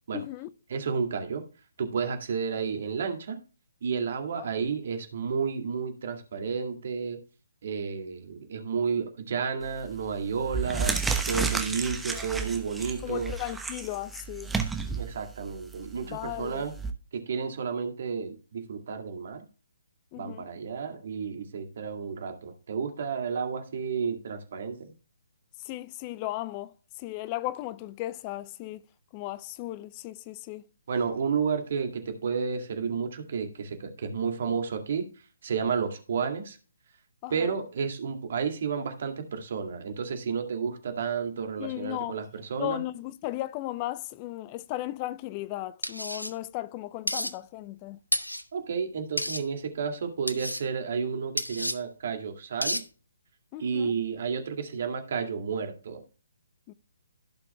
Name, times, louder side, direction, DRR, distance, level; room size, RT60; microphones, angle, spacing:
voice 1, 0.1-0.5 4.4-4.5 12.1-12.4 13.0-14.5 16.1-16.6 20.1-20.5 25.6-28.8 29.1-30.6 37.2-37.6 41.6-42.2 42.6-48.0 53.5-53.9 56.7-56.8, left 16 dB, 25° left, 0.4 m, -36 dB
voice 2, 0.7-1.4 1.8-3.4 3.8-7.2 7.6-13.3 15.0-16.7 17.1-19.4 20.1-24.9 30.9-35.0 35.4-36.6 37.3-42.8 48.5-52.8 53.6-56.0, right 6 dB, 50° right, 2.2 m, -31 dB
sound 1, 9.6-9.9 10.4-16.9, right 4 dB, 5° right, 1.0 m, -32 dB
sound 2, 45.8-46.3 47.1-47.3 48.1-48.4 49.2-49.4 50.3-50.6 51.4-51.8 52.6-52.8, left 1 dB, 90° left, 1.0 m, -30 dB
16.0 x 6.0 x 2.2 m
figure-of-eight pair, 135°, 0 cm